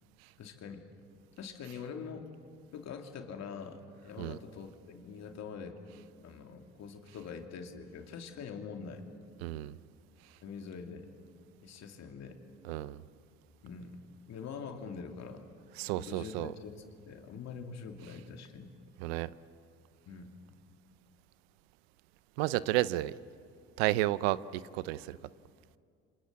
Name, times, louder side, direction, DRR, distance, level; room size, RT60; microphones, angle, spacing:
voice 1, 0.4-0.8 1.4-2.3 2.7-5.8 6.2-9.0 10.4-11.1 11.6-12.4 13.6-14.0 14.3-15.4 15.9-18.7 20.1-20.3, left 6 dB, 60° left, 4 dB, 2.9 m, -44 dB
voice 2, 9.4-9.7 12.7-13.0 15.8-16.5 19.0-19.3 22.4-23.1 23.8-25.2, right 16 dB, 90° right, 18 dB, 0.6 m, -31 dB
28.0 x 25.5 x 7.7 m, 2.3 s
supercardioid pair, 65°, 30 cm